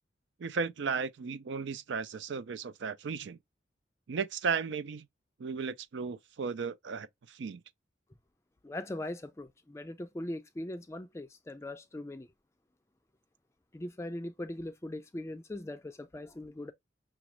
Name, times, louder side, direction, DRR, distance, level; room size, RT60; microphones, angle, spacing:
voice 1, 0.4-3.4 4.1-5.1 5.4-7.6, right 5 dB, 75° right, 0.4 m, -35 dB
voice 2, 8.6-12.3 13.7-16.7, left 1 dB, 15° left, 0.3 m, -40 dB
5.9 x 2.3 x 3.0 m
head